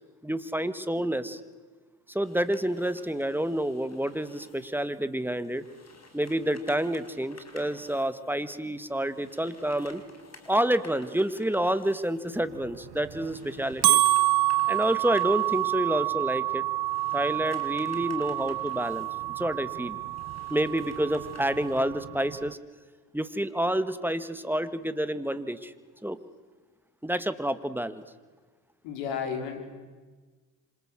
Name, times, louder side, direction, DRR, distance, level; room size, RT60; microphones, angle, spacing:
voice 1, 0.2-1.4 2.1-5.6 6.1-10.0 10.5-14.0 14.7-16.6 17.1-19.1 19.4-20.0 20.5-22.6 23.1-25.7 26.0-26.2 27.0-28.0, right 1 dB, 5° right, 12 dB, 2.2 m, -28 dB
sound 1, 2.2-21.8, left 3 dB, 35° left, 5.9 m, -53 dB
sound 2, 12.6-22.5, right 16 dB, 55° right, 1.5 m, -28 dB
voice 2, 28.8-29.6, left 7 dB, 75° left, 6 dB, 5.2 m, -32 dB
27.0 x 26.5 x 7.8 m, 1.3 s
hypercardioid pair, 65°, 47 cm